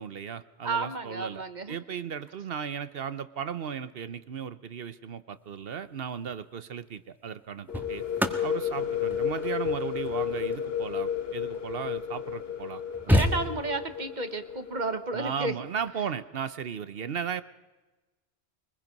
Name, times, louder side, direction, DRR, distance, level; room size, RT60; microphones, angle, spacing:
voice 1, 0.0-8.0 8.4-13.3 15.1-17.4, right 7 dB, 60° right, 13 dB, 1.0 m, -36 dB
voice 2, 0.6-1.7 13.1-15.5, right 3 dB, 45° right, 9 dB, 1.3 m, -32 dB
sound 1, 6.1-6.4 7.3-11.9 12.4-12.5 12.7-14.0 15.7-15.9, equal, ahead, 1.5 m, -31 dB
sound 2, 7.7-15.3, left 8 dB, 60° left, 1.6 m, -32 dB
23.5 x 21.0 x 5.3 m, 1.2 s
omnidirectional pair, 1.1 m